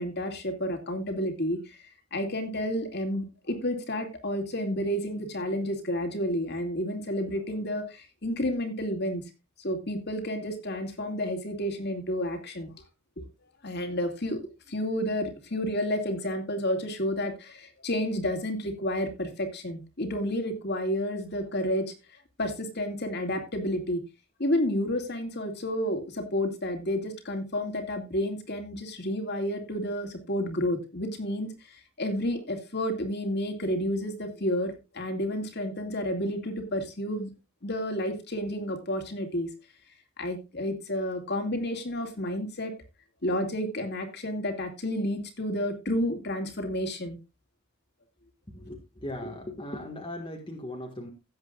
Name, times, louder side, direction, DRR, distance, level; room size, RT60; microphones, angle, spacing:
voice 1, 0.0-1.8 2.1-9.2 9.6-12.7 13.2-13.3 13.6-14.4 14.7-21.9 22.4-24.0 24.4-37.3 37.6-39.5 40.2-42.7 43.2-47.2, left 1 dB, 50° left, 6 dB, 2.5 m, -30 dB
voice 2, 48.5-51.1, left 1 dB, 25° left, 1 dB, 1.7 m, -38 dB
17.0 x 8.0 x 2.5 m, 0.26 s
head